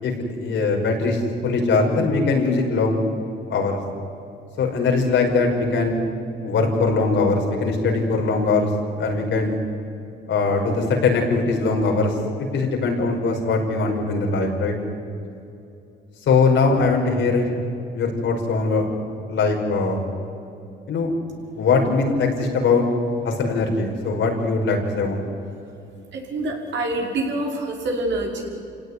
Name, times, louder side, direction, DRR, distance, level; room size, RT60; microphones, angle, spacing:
voice 1, 0.0-3.0 3.5-3.8 4.6-6.0 6.4-8.7 9.0-9.6 10.3-12.1 12.5-14.7 16.3-17.5 17.9-18.8 19.3-20.0 20.9-21.1 21.6-22.8 23.2-25.2, left 3 dB, 75° left, 1 dB, 5.4 m, -21 dB
voice 2, 26.1-28.4, right 2 dB, 65° right, 0 dB, 5.6 m, -26 dB
27.5 x 17.5 x 9.9 m, 2.6 s
cardioid pair, 90°, 20 cm